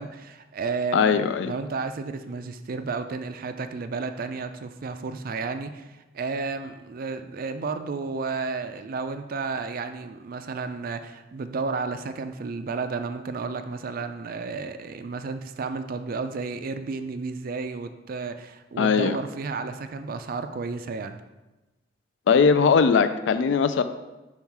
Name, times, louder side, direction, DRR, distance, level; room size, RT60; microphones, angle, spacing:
voice 1, 0.0-1.1 1.4-21.2, right 4 dB, 50° right, 9 dB, 0.4 m, -32 dB
voice 2, 0.9-1.5 18.8-19.2 22.3-23.8, left 5 dB, 75° left, 10 dB, 0.4 m, -20 dB
5.6 x 4.5 x 4.6 m, 1.1 s
head